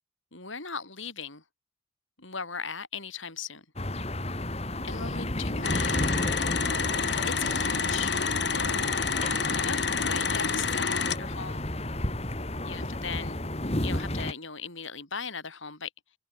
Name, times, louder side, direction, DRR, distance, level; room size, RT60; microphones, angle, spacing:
voice 1, 0.3-1.4 2.2-3.6 4.8-6.1 7.2-8.9 9.5-11.6 12.6-13.4 13.8-15.9, left 5 dB, 75° left, 6.6 m, -38 dB
sound 1, 3.8-14.3, left 1 dB, 30° left, 2.3 m, -32 dB
sound 2, 5.6-11.2, left 5 dB, 55° left, 4.2 m, -28 dB
head